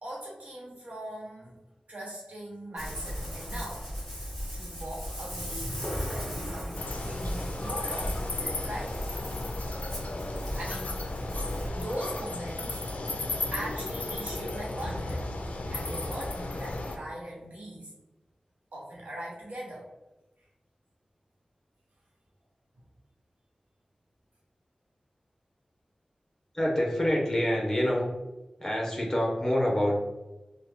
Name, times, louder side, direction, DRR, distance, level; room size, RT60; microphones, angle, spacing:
voice 1, 0.0-1.6 1.9-3.9 4.5-5.7 6.1-9.0 10.6-11.2 11.7-12.8 13.5-15.3 15.7-17.9 18.7-19.9, right 1 dB, 85° right, -4 dB, 1.1 m, -40 dB
Ocean, 2.8-11.7, equal, 5° right, 1.5 m, -36 dB
sound 1, 6.8-17.0, left 2 dB, 70° left, 0.4 m, -34 dB
voice 2, 26.5-28.1 28.6-30.0, equal, 20° left, -2 dB, 0.9 m, -26 dB
3.1 x 2.2 x 3.4 m, 1.0 s
wide cardioid pair, 85°, 2 cm